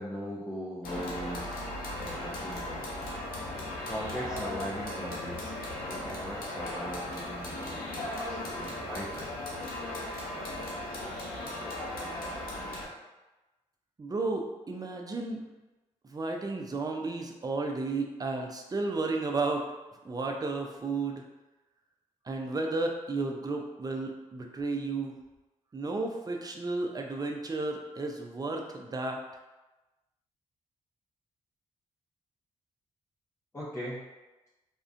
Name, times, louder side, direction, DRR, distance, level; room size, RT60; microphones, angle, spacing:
voice 1, 0.0-1.5 2.0-2.9 3.9-5.5 5.8-9.3 33.5-34.1, equal, 20° left, -8 dB, 0.7 m, -39 dB
sound 1, 0.8-12.9, left 1 dB, 80° left, 0.5 m, -37 dB
voice 2, 14.0-15.4 16.1-19.7 20.0-21.2 22.3-25.2 25.7-29.2, right 3 dB, 25° right, 2 dB, 0.4 m, -33 dB
2.4 x 2.1 x 2.4 m, 1.1 s
hypercardioid pair, 40°, 15 cm